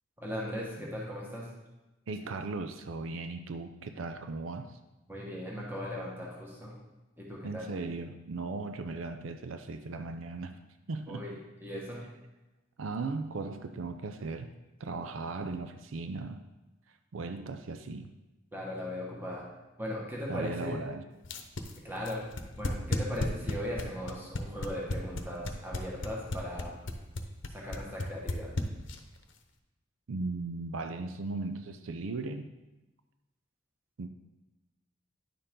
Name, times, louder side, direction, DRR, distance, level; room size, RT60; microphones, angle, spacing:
voice 1, 0.2-1.5 5.1-6.7 7.2-7.7 11.1-12.0 18.5-19.4 19.8-20.8 21.8-22.2 22.6-26.7 27.5-28.5, equal, 10° right, -4 dB, 1.4 m, -38 dB
voice 2, 2.1-4.8 7.4-10.5 10.9-11.2 12.8-14.5 14.8-16.4 17.1-18.1 20.3-21.0 30.1-32.5 34.0-34.1, right 3 dB, 80° right, 8 dB, 0.5 m, -37 dB
sound 1, 21.2-29.2, left 2 dB, 70° left, 0.8 m, -34 dB
10.0 x 6.7 x 3.7 m, 1.1 s
head